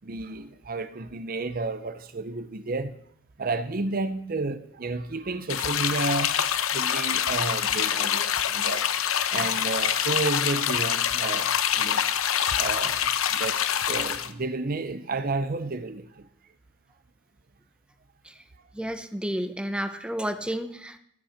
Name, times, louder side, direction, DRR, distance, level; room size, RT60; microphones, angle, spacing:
voice 1, 0.0-2.9 3.4-6.4 6.7-12.0 12.6-13.6 13.9-16.3, right 3 dB, 45° right, 0.6 m, -31 dB
sound 1, 5.5-14.3, left 9 dB, 75° left, 0.8 m, -25 dB
voice 2, 18.7-21.0, equal, 5° right, 0.7 m, -31 dB
13.0 x 8.6 x 5.8 m
head